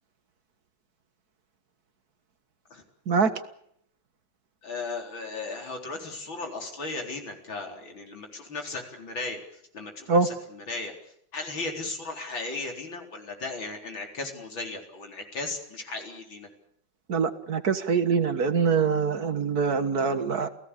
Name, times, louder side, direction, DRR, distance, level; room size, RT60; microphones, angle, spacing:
voice 1, 4.6-9.4 9.7-10.9 11.3-16.5, left 3 dB, 90° left, 3 dB, 4.9 m, -36 dB
voice 2, 17.1-20.5, right 5 dB, 55° right, 11 dB, 2.0 m, -24 dB
29.0 x 17.5 x 8.5 m, 0.68 s
omnidirectional pair, 2.1 m